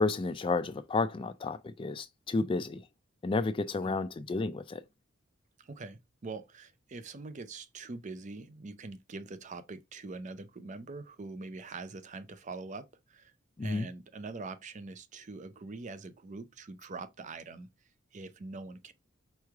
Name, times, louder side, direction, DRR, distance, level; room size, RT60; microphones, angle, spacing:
voice 1, 0.0-2.8 3.2-4.8 13.6-13.9, left 3 dB, 25° left, 0.3 m, -31 dB
voice 2, 5.6-13.3 13.6-17.7 18.1-18.9, right 3 dB, 40° right, 0.5 m, -43 dB
4.6 x 3.2 x 3.4 m
head